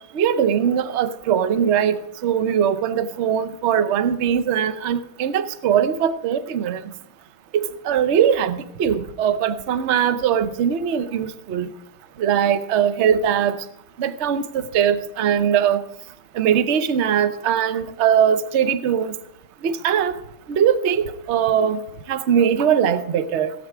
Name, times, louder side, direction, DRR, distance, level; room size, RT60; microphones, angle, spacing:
voice 1, 0.1-6.8 7.5-11.7 12.2-13.6 14.0-15.8 16.3-19.1 19.6-20.2 20.5-23.5, right 8 dB, 65° right, 12 dB, 0.6 m, -21 dB
17.0 x 8.8 x 4.8 m, 0.75 s
omnidirectional pair, 2.2 m